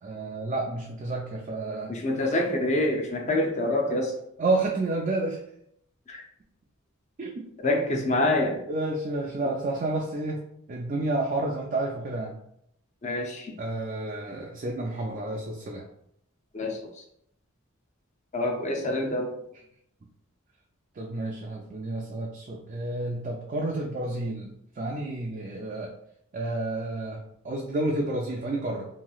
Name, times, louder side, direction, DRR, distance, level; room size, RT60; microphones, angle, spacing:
voice 1, 0.0-1.9 4.4-5.4 7.2-7.4 8.7-10.4 10.7-12.4 13.6-15.9 21.0-25.9 26.3-28.9, right 2 dB, 35° right, -1 dB, 0.3 m, -30 dB
voice 2, 1.9-4.2 6.1-6.2 7.6-8.6 13.0-13.5 16.5-16.8 18.3-19.3, left 1 dB, 35° left, 1 dB, 0.5 m, -26 dB
3.0 x 2.7 x 2.3 m, 0.73 s
head